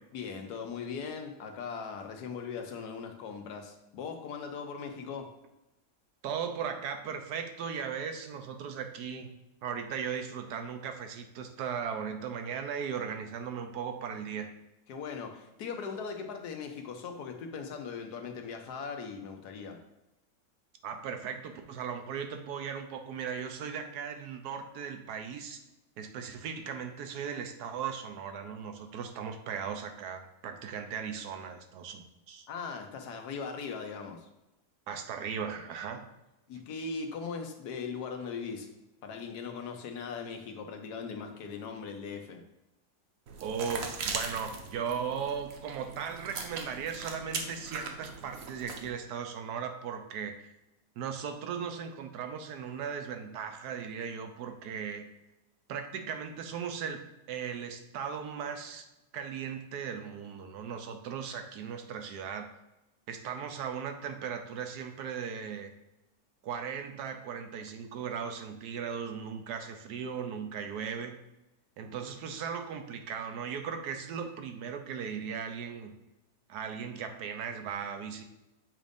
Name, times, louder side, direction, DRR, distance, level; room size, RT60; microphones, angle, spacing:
voice 1, 0.1-5.3 14.9-19.8 32.5-34.3 36.5-38.7 39.0-42.4, left 5 dB, 85° left, 4 dB, 1.4 m, -39 dB
voice 2, 6.2-9.3 9.6-14.5 20.8-25.6 26.0-32.5 34.9-36.0 43.4-50.5 51.0-55.1 55.7-58.8 59.1-62.6 63.1-65.7 66.4-71.2 71.8-75.9 76.5-78.2, right 7 dB, 90° right, 6 dB, 1.3 m, -37 dB
sound 1, 43.3-48.9, right 4 dB, 65° right, 1.1 m, -40 dB
7.3 x 2.6 x 5.1 m, 0.95 s
omnidirectional pair, 1.7 m